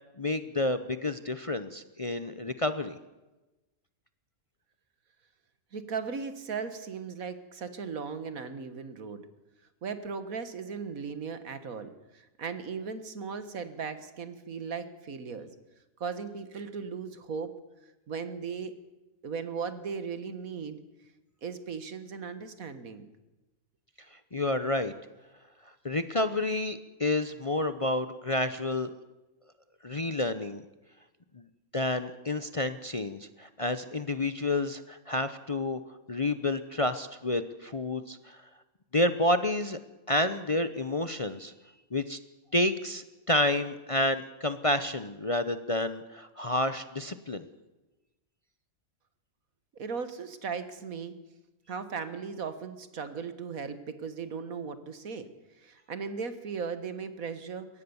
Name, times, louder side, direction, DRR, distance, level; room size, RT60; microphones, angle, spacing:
voice 1, 0.2-3.0 24.3-24.9 25.8-28.9 29.8-30.6 31.3-31.4 31.7-35.8 36.1-38.4 38.9-39.8 40.1-41.5 41.9-42.2 42.5-47.5, left 1 dB, 30° left, 11 dB, 0.7 m, -29 dB
voice 2, 5.7-9.2 9.8-15.5 16.0-17.5 18.1-18.8 19.2-20.8 21.4-23.1 49.8-51.2 51.7-55.3 55.6-57.8, right 5 dB, 80° right, 11 dB, 1.9 m, -37 dB
22.5 x 18.0 x 7.1 m, 1.1 s
omnidirectional pair, 1.5 m